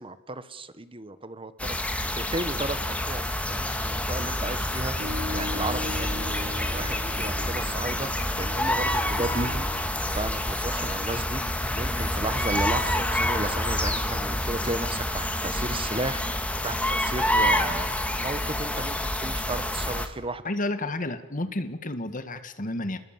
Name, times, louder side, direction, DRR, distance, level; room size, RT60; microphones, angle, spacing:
voice 1, 0.0-4.9 5.3-16.4 16.6-20.4, right 2 dB, 25° right, 13 dB, 1.4 m, -34 dB
sound 1, 1.6-20.1, left 1 dB, 5° left, 1.9 m, -28 dB
sound 2, 5.0-10.9, left 1 dB, 70° right, 2.5 m, -39 dB
voice 2, 20.4-23.0, left 2 dB, 40° left, 10 dB, 1.7 m, -31 dB
29.5 x 21.0 x 7.5 m, 0.98 s
head